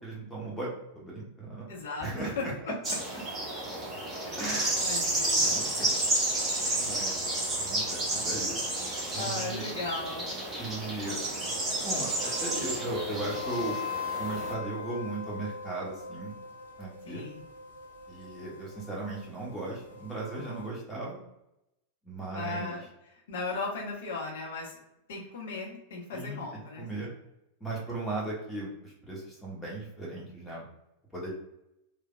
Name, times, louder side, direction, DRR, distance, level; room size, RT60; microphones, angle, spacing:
voice 1, 0.0-1.7 2.0-2.5 4.4-4.8 5.4-6.0 6.8-7.2 7.6-8.6 9.1-9.6 10.6-11.2 11.8-13.8 14.2-16.3 16.8-17.2 18.1-21.2 22.0-22.8 26.1-26.4 26.8-27.1 27.6-30.6 31.1-31.3, right 2 dB, 5° left, -4 dB, 1.0 m, -37 dB
voice 2, 1.7-2.4 4.4-5.6 9.2-10.3 17.1-17.4 22.3-24.8 25.1-26.9, left 3 dB, 60° left, -2 dB, 0.8 m, -37 dB
sound 1, 2.8-14.5, right 2 dB, 20° right, 0.9 m, -31 dB
sound 2, 4.4-20.7, left 4 dB, 85° left, 0.5 m, -43 dB
3.3 x 2.2 x 2.2 m, 0.86 s
figure-of-eight pair, 90°, 0 cm